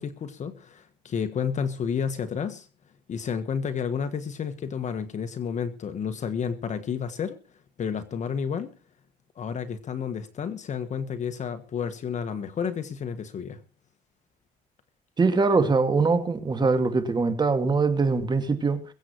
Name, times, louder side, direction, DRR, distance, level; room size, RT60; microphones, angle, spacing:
voice 1, 0.0-2.7 3.1-7.4 7.8-8.7 9.3-13.6, left 7 dB, 45° left, 1.5 m, -31 dB
voice 2, 15.2-18.8, right 4 dB, 25° right, 2.4 m, -22 dB
22.5 x 8.1 x 4.6 m
cardioid pair, 110°, 17 cm